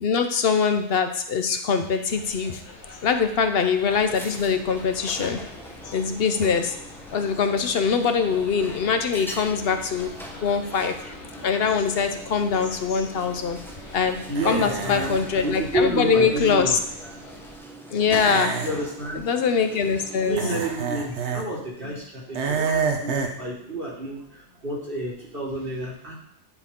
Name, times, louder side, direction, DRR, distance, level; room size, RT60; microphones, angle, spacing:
voice 1, 0.0-2.6 3.0-5.4 5.8-6.8 7.1-10.1 10.4-11.1 11.4-13.6 13.9-14.2 14.4-16.8 17.9-18.6 19.2-20.4, left 6 dB, 60° left, 7 dB, 0.9 m, -23 dB
sound 1, 2.1-17.6, left 2 dB, 75° left, 1.8 m, -44 dB
sound 2, 3.9-20.5, right 1 dB, ahead, 0.6 m, -42 dB
voice 2, 14.3-16.8 17.9-18.0 18.6-19.2 20.1-26.1, right 1 dB, 50° right, -5 dB, 1.9 m, -30 dB
sound 3, 14.3-15.2 18.1-18.7 20.4-21.4 22.3-23.4, right 5 dB, 75° right, 1.1 m, -27 dB
10.5 x 4.5 x 3.7 m, 0.69 s
omnidirectional pair, 1.2 m